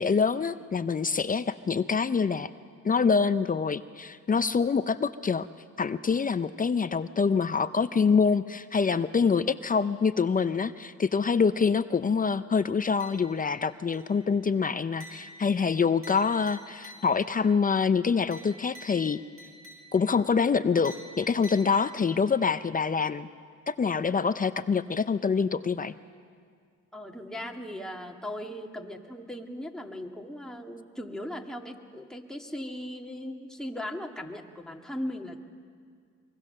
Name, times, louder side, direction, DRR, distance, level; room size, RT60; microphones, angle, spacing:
voice 1, 0.0-2.5 2.8-5.5 5.8-19.2 19.9-23.3 23.7-25.9, left 5 dB, 30° left, 12 dB, 0.6 m, -25 dB
sound 1, 13.0-13.6 13.9-14.3 15.0-17.4 18.3-20.2 20.8-22.3, equal, 50° right, 6.7 m, -49 dB
voice 2, 26.9-35.4, left 1 dB, ahead, 1 dB, 2.1 m, -38 dB
24.0 x 23.5 x 6.7 m, 2.1 s
cardioid pair, 90°, 30 cm